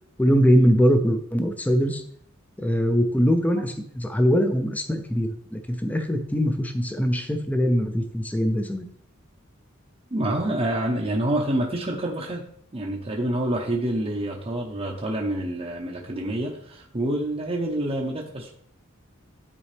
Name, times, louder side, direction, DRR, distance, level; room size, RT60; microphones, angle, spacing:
voice 1, 0.2-2.0 2.6-8.9, equal, 5° left, 6 dB, 0.6 m, -22 dB
voice 2, 10.1-12.5 12.7-18.5, right 1 dB, 30° right, -2 dB, 0.8 m, -27 dB
10.0 x 4.2 x 3.4 m, 0.66 s
head